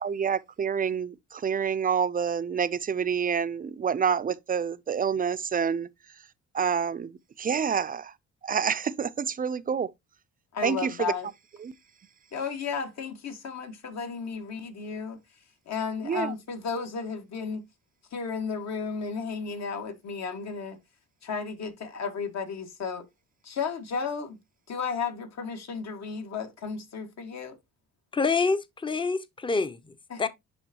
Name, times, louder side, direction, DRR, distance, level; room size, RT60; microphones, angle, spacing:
voice 1, 0.0-5.9 6.5-7.1 7.4-8.1 8.4-9.9 10.6-10.9 11.6-11.7 16.0-16.3, right 7 dB, 30° right, 0.5 m, -27 dB
voice 2, 10.5-11.3 12.3-15.2 15.7-17.6 18.1-20.8 21.2-23.0 23.4-24.4 24.7-27.5 30.1-30.3, left 5 dB, 60° left, 2.0 m, -33 dB
voice 3, 28.1-30.3, left 4 dB, 15° left, 0.7 m, -27 dB
10.5 x 3.6 x 2.9 m
cardioid pair, 90°, 30 cm